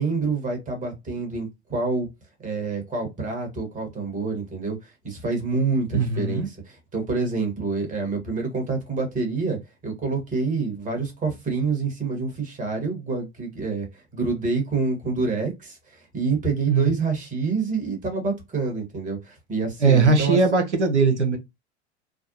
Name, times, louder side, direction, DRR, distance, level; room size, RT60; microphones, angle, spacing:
voice 1, 0.0-2.1 2.4-20.4, right 4 dB, 25° right, 1.4 m, -27 dB
voice 2, 5.9-6.5 16.7-16.9 19.8-21.4, right 4 dB, 85° right, 0.8 m, -20 dB
3.4 x 2.1 x 2.7 m
figure-of-eight pair, 85°, 34 cm